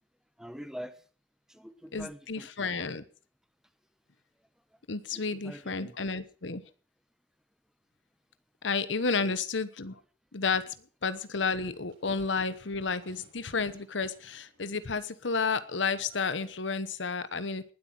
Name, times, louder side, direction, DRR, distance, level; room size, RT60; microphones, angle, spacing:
voice 1, 0.4-1.0 1.5-2.8 5.1-6.1 9.2-9.4, equal, 5° right, 11 dB, 1.0 m, -45 dB
voice 2, 1.9-3.0 4.9-6.6 8.6-10.0 10.3-10.7 11.0-17.6, left 4 dB, 70° left, 14 dB, 1.0 m, -31 dB
Livestock farm animals working animals, 11.0-16.8, right 2 dB, 75° right, 7.6 m, -61 dB
19.5 x 8.3 x 6.1 m, 0.40 s
head